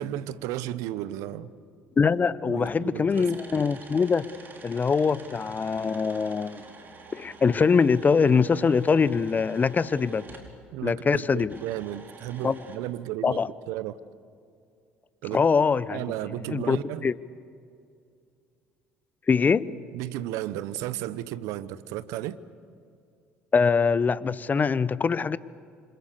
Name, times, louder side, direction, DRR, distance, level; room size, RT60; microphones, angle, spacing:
voice 1, 0.0-1.5 2.4-3.3 10.7-13.4 13.7-14.0 15.2-15.4 15.9-17.1 19.9-22.4, right 13 dB, 65° right, 1.0 m, -34 dB
voice 2, 2.0-4.3 4.6-6.6 7.1-10.2 10.8-11.5 12.4-12.6 13.2-13.5 15.3-16.0 16.5-17.2 19.3-19.7 23.5-25.4, left 5 dB, 30° left, 0.9 m, -23 dB
sound 1, 2.1-2.2 2.6-10.6 11.4-12.8, right 3 dB, 35° right, 4.7 m, -47 dB
27.5 x 26.5 x 6.8 m
hypercardioid pair, 60°, 6 cm